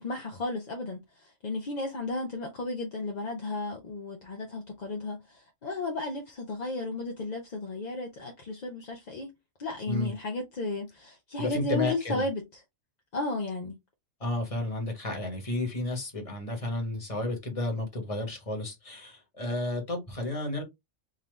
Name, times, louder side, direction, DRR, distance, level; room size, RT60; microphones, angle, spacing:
voice 1, 0.0-9.3 9.6-12.4 13.1-13.8, left 2 dB, 45° left, 0.6 m, -34 dB
voice 2, 11.4-12.2 14.2-20.6, left 2 dB, 30° left, 1.3 m, -32 dB
3.7 x 2.8 x 3.2 m
omnidirectional pair, 1.3 m